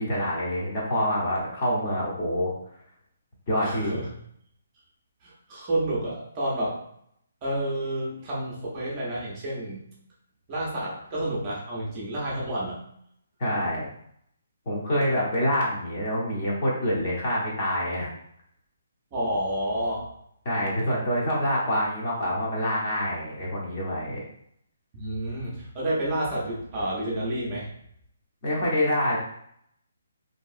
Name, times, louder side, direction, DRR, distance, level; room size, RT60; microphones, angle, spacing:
voice 1, 0.0-2.5 3.5-4.0 13.4-13.9 14.7-18.1 20.4-24.2 28.4-29.2, equal, 25° left, -5 dB, 0.7 m, -26 dB
voice 2, 3.6-4.1 5.2-6.8 7.4-9.8 10.5-12.8 19.1-20.1 24.9-27.7, right 1 dB, 20° right, -5 dB, 0.5 m, -29 dB
2.8 x 2.6 x 2.4 m, 0.70 s
hypercardioid pair, 170°, 0 cm